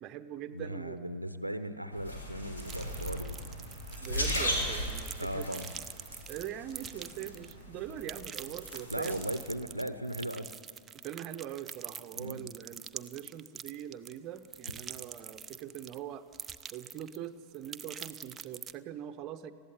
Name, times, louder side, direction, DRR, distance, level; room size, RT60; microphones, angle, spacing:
voice 1, 0.0-1.0 4.0-5.6 6.3-9.2 11.0-16.3 16.7-19.5, right 10 dB, 35° right, 8 dB, 1.0 m, -42 dB
voice 2, 0.5-3.5 5.2-5.7 8.9-10.5 12.2-12.5, equal, 90° right, 12 dB, 0.8 m, -37 dB
sound 1, 1.9-9.4, equal, 75° left, 4.0 m, -37 dB
sound 2, 2.6-7.6 7.9-16.0 16.3-17.2 17.5-18.7, right 7 dB, 20° right, 0.6 m, -45 dB
20.0 x 15.0 x 9.8 m, 2.2 s
figure-of-eight pair, 90°, 0 cm